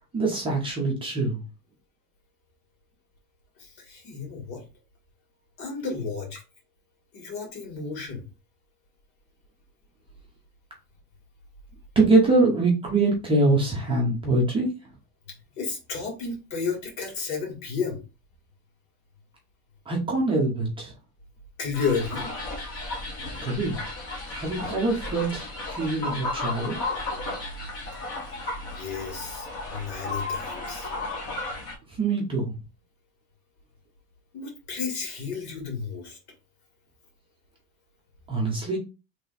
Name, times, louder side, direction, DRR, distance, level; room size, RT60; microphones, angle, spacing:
voice 1, 0.1-1.4 12.0-14.7 19.9-20.9 23.4-23.8 24.3-26.8 31.9-32.5 38.3-38.8, right 2 dB, 10° right, -2 dB, 0.6 m, -24 dB
voice 2, 3.6-4.6 5.6-6.4 7.1-8.2 15.3-18.0 21.6-22.3 28.8-30.9 34.3-36.2, left 5 dB, 70° left, 2 dB, 2.0 m, -32 dB
sound 1, 21.7-31.7, left 2 dB, 30° left, 1.4 m, -34 dB
3.3 x 2.9 x 3.9 m, 0.30 s
supercardioid pair, 170°, 44 cm